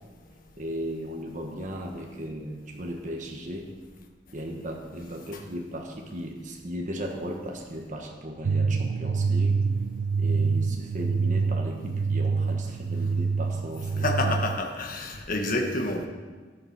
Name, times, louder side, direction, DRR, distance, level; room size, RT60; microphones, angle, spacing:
voice 1, 0.6-3.7 4.3-9.6 10.2-14.3, equal, 40° right, 1 dB, 1.2 m, -36 dB
sound 1, 8.4-14.6, right 4 dB, 85° right, 0.4 m, -26 dB
voice 2, 14.0-16.1, left 2 dB, 45° left, 2 dB, 1.3 m, -28 dB
14.0 x 6.7 x 5.9 m, 1.4 s
head